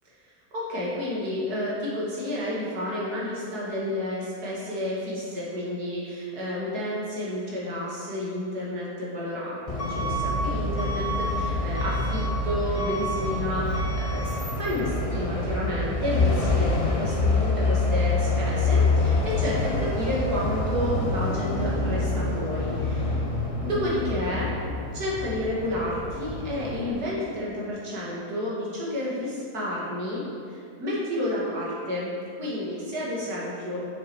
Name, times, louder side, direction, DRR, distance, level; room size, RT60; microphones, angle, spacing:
voice 1, 0.5-23.2 23.6-33.8, left 1 dB, 75° right, -6 dB, 2.4 m, -31 dB
Truck / Alarm, 9.7-26.9, left 2 dB, 30° left, 0.7 m, -26 dB
7.1 x 6.8 x 4.6 m, 2.4 s
omnidirectional pair, 1.7 m